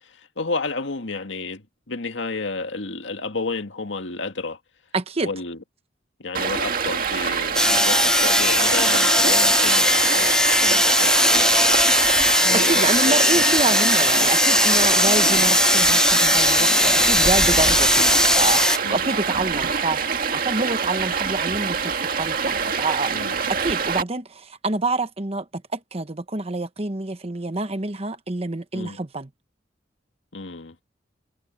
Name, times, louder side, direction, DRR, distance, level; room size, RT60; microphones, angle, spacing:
voice 1, 0.4-1.6 1.9-4.6 5.2-5.6 6.2-11.8 12.5-13.4 18.8-19.1 23.1-23.4 28.7-29.0 30.3-30.8, left 3 dB, 90° left, 1.9 m, -31 dB
voice 2, 4.9-5.3 12.5-23.2 23.5-29.3, right 2 dB, 35° right, 1.2 m, -27 dB
Stream, 6.3-24.0, right 5 dB, 50° right, 2.0 m, -25 dB
sound 1, 7.5-18.8, left 1 dB, 5° left, 0.7 m, -18 dB
head